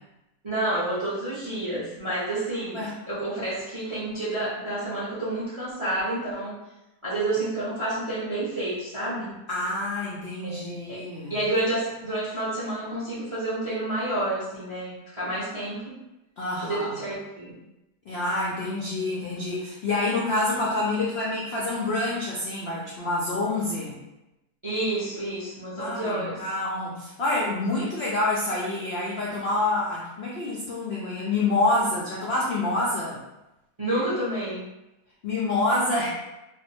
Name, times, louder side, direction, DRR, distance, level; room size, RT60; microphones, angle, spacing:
voice 1, 0.4-6.6 7.0-9.3 10.4-11.0 11.3-16.0 16.6-17.6 24.6-26.4 33.8-34.6, right 1 dB, 35° right, -10 dB, 0.4 m, -29 dB
voice 2, 9.5-11.4 16.4-17.0 18.1-24.0 25.8-33.2 35.2-36.1, left 2 dB, 80° left, -5 dB, 0.5 m, -27 dB
2.6 x 2.0 x 2.7 m, 0.96 s
omnidirectional pair, 1.7 m